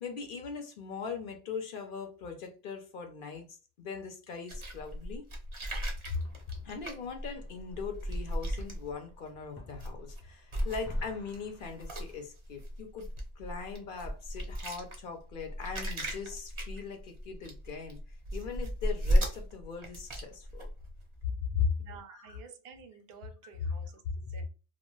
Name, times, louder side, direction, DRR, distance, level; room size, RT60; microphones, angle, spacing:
voice 1, 0.0-5.3 6.1-6.2 6.6-13.1 13.4-20.7 21.5-21.7 22.1-22.2, left 6 dB, 55° left, 0.7 m, -39 dB
sound 1, 4.5-9.3 9.7-10.2 10.5-21.2, equal, 35° right, 0.5 m, -35 dB
sound 2, 6.1-12.3, left 1 dB, 20° left, 0.4 m, -56 dB
voice 2, 21.7-24.5, right 6 dB, 65° right, 0.7 m, -52 dB
2.3 x 2.2 x 3.0 m
omnidirectional pair, 1.2 m